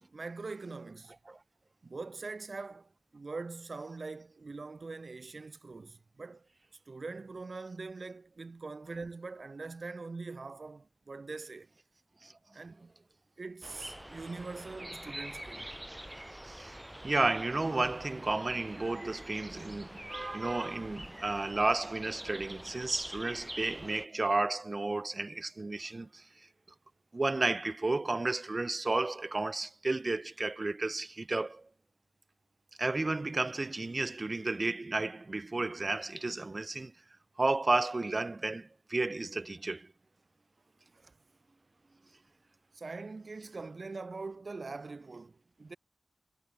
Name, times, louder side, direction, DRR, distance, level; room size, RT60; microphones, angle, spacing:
voice 1, 0.1-1.1 1.8-6.5 6.9-11.7 12.5-12.9 13.4-15.7 40.9-41.1 42.7-45.8, right 3 dB, 55° right, 2.4 m, -43 dB
sound 1, 13.6-24.1, right 1 dB, 10° right, 1.3 m, -46 dB
voice 2, 16.4-16.8 17.0-26.3 27.1-31.7 32.8-36.9 37.4-39.9, right 2 dB, 40° right, 1.1 m, -32 dB
cardioid pair, 55°, 0 cm